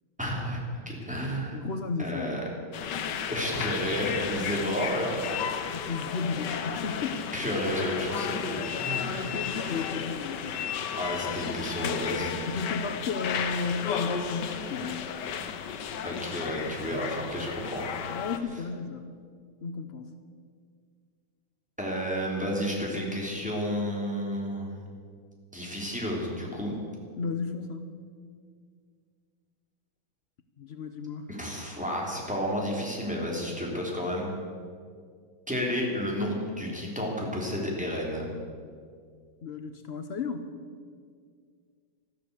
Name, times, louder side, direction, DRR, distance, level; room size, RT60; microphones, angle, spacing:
voice 1, 0.2-1.6 2.0-2.4 3.3-5.1 7.3-9.2 11.0-12.4 16.0-17.8 21.8-24.7 25.5-26.7 31.3-34.3 35.5-38.3, equal, 5° right, -3 dB, 3.2 m, -31 dB
voice 2, 1.5-2.3 5.7-7.3 8.9-10.7 11.8-12.1 12.5-15.1 18.0-19.1 19.6-20.1 27.2-28.0 30.6-31.3 39.4-40.5, left 4 dB, 85° left, 8 dB, 0.5 m, -34 dB
sound 1, 2.7-18.4, left 7 dB, 65° left, 1.4 m, -33 dB
13.0 x 13.0 x 8.2 m, 2.1 s
omnidirectional pair, 2.2 m